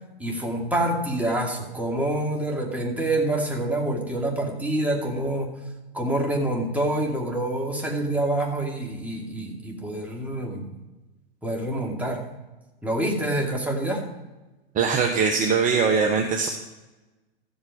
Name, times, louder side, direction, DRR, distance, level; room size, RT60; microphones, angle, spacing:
voice 1, 0.2-5.5 5.9-10.7 11.4-12.2 12.8-14.0, right 1 dB, 5° right, -1 dB, 2.5 m, -26 dB
voice 2, 14.7-16.5, right 5 dB, 25° right, 4 dB, 1.1 m, -21 dB
14.5 x 8.3 x 4.9 m, 1.1 s
hypercardioid pair, 105°, 31 cm